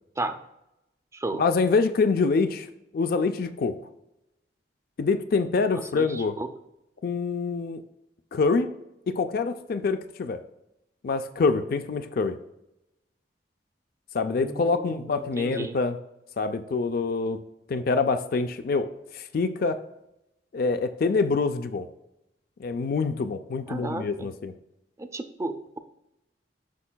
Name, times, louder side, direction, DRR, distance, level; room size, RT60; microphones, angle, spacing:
voice 1, 1.4-2.7 2.9-3.8 5.0-6.4 7.0-7.8 8.3-8.7 9.1-10.4 11.0-12.4 14.1-16.0 16.4-17.4 17.7-18.9 19.1-19.8 20.5-21.9 22.6-24.5, left 4 dB, 55° left, 9 dB, 0.4 m, -25 dB
voice 2, 6.0-6.5 14.4-15.8 23.7-24.3 25.0-25.8, right 2 dB, 15° right, 8 dB, 0.4 m, -34 dB
8.4 x 5.5 x 2.2 m, 0.87 s
head